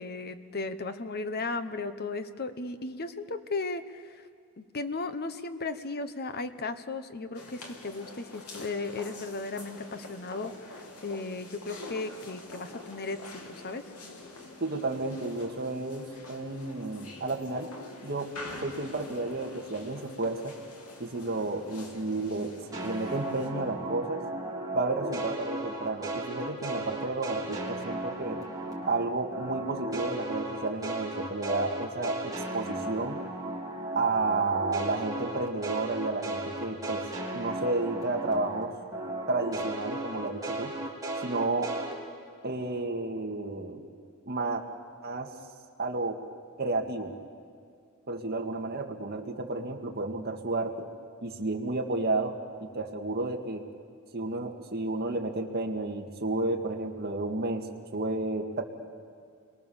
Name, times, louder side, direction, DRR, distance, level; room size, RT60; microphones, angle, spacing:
voice 1, 0.0-4.3 4.6-13.8, left 3 dB, 45° left, 10 dB, 1.1 m, -36 dB
sound 1, 7.3-23.5, left 2 dB, 85° left, 3.0 m, -46 dB
voice 2, 14.6-17.7 18.0-18.3 18.6-20.5 21.0-24.2 24.7-28.4 28.9-33.2 33.9-37.0 37.3-38.7 39.3-40.9 41.2-41.7 42.4-43.9 44.3-44.6 45.0-45.4 45.8-46.2 46.6-47.1 48.1-50.9 51.2-53.6 54.1-57.7 57.9-58.6, right 2 dB, 45° right, 3 dB, 2.0 m, -31 dB
sound 2, 22.7-29.0 29.3-38.6 38.9-41.9, right 1 dB, 15° right, 3.5 m, -35 dB
29.5 x 23.0 x 7.1 m, 2.2 s
head